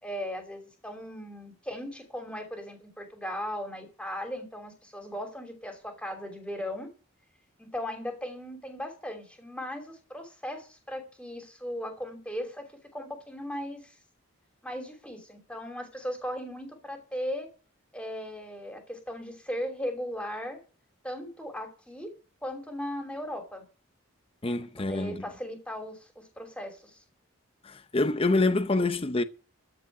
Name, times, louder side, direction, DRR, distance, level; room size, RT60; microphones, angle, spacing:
voice 1, 0.0-6.9 7.6-14.0 14.6-17.5 17.9-20.6 21.0-22.1 22.4-23.6 24.4-27.0, equal, 5° left, 3.0 m, -37 dB
voice 2, 24.4-25.2 27.6-29.2, left 2 dB, 25° left, 0.7 m, -26 dB
14.0 x 5.1 x 9.3 m
head